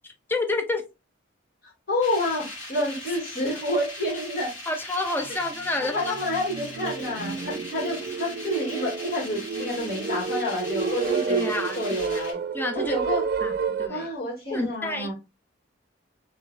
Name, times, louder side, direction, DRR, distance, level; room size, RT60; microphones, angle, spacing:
voice 1, 0.3-0.8 4.7-6.1 11.3-11.8 12.1-12.2 12.5-12.9 13.4-14.1 14.5-15.1, left 2 dB, 10° left, 0.5 m, -29 dB
voice 2, 1.9-4.5 5.8-11.4 11.8-12.4 12.7-13.2 13.9-15.1, left 1 dB, 55° left, 2.1 m, -29 dB
sound 1, 2.0-12.3, left 1 dB, 75° left, 1.7 m, -40 dB
sound 2, 5.3-5.4 5.8-13.9, right 5 dB, 50° right, 0.3 m, -30 dB
3.7 x 3.1 x 2.4 m
head